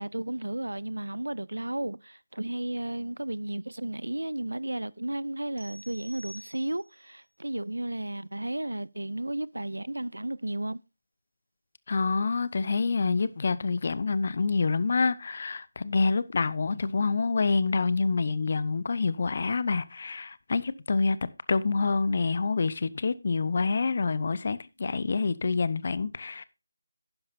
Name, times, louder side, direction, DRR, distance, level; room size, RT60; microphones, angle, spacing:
voice 1, 0.0-10.8, right 1 dB, 85° right, 0.4 m, -33 dB
sound 1, 5.6-7.1, equal, 60° right, 3.4 m, -49 dB
voice 2, 11.9-21.2 21.5-26.4, left 4 dB, 45° left, 0.7 m, -27 dB
11.5 x 9.9 x 2.6 m
figure-of-eight pair, 160°, 0 cm